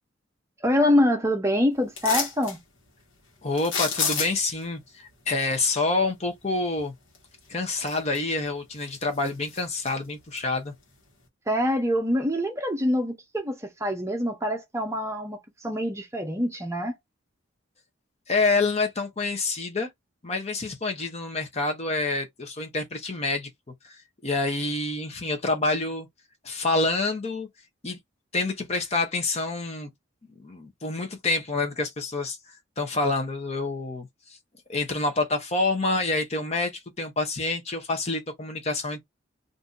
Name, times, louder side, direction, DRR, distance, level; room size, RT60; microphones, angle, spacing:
voice 1, 0.6-2.6 11.5-16.9, left 1 dB, 15° right, 0.6 m, -25 dB
Hook-and-loop-fasteners-on-climbing-boots, 2.0-2.6 3.6-4.6 7.1-7.2 7.7-8.4 8.8-9.9 10.4-10.5, left 6 dB, 70° left, 1.3 m, -29 dB
voice 2, 3.4-6.9 7.5-10.7 18.3-19.9 20.2-23.5 23.8-26.1 26.4-27.5 27.8-28.0 28.3-29.9 30.4-34.1 34.7-39.0, left 3 dB, 30° left, 0.8 m, -27 dB
2.7 x 2.6 x 3.6 m
head